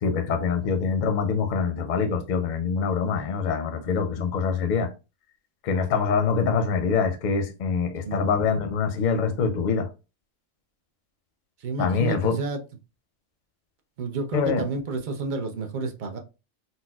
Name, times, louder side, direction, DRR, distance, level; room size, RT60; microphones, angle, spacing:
voice 1, 0.0-4.9 5.6-9.9 11.8-12.4 14.3-14.6, left 5 dB, 55° left, 0.5 m, -24 dB
voice 2, 8.0-8.5 11.6-12.6 14.0-16.2, right 3 dB, 55° right, 0.6 m, -30 dB
4.1 x 2.1 x 2.3 m
omnidirectional pair, 1.2 m